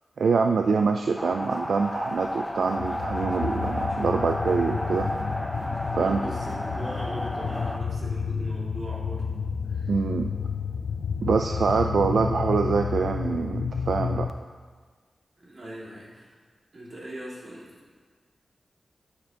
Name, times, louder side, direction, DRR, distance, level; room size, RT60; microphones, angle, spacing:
voice 1, 0.2-5.1 5.9-6.2 9.9-10.3 11.2-14.3, right 5 dB, 80° right, 4 dB, 0.3 m, -25 dB
sound 1, 1.2-7.8, left 1 dB, 10° left, 0.5 m, -32 dB
sound 2, 2.7-14.3, left 6 dB, 80° left, 0.3 m, -31 dB
voice 2, 5.9-9.2 9.6-9.9 15.4-16.4 16.7-17.8, right 1 dB, 60° right, -6 dB, 2.2 m, -40 dB
11.0 x 6.7 x 2.8 m, 1.5 s
wide cardioid pair, 100°, 0 cm